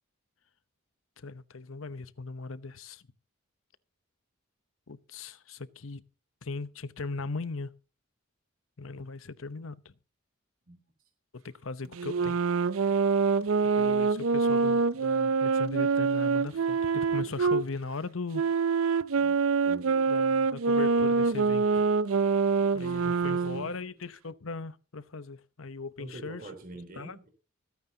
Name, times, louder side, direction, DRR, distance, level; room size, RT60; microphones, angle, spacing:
voice 1, 1.2-3.0 4.9-6.0 6.4-7.7 8.8-9.9 11.3-12.4 13.8-18.4 20.1-21.9 22.7-26.4 27.0-27.2, left 3 dB, 70° left, 0.9 m, -38 dB
sound 1, 11.9-17.6 18.3-23.7, right 4 dB, 80° right, 0.6 m, -25 dB
voice 2, 19.6-20.0 22.6-23.7 26.0-27.3, right 1 dB, 45° right, 3.7 m, -46 dB
25.5 x 9.5 x 2.8 m
head